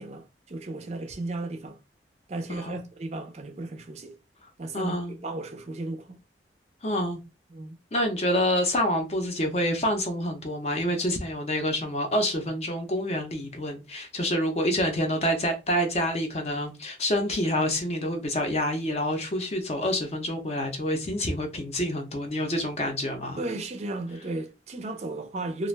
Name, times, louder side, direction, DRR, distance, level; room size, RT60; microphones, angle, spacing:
voice 1, 0.0-1.8 2.3-4.1 4.6-6.2 7.5-7.8 23.4-25.7, right 2 dB, 35° right, 0.4 m, -35 dB
voice 2, 4.7-5.2 6.8-7.2 7.9-23.4, left 1 dB, 35° left, 0.6 m, -27 dB
2.4 x 2.2 x 3.2 m
head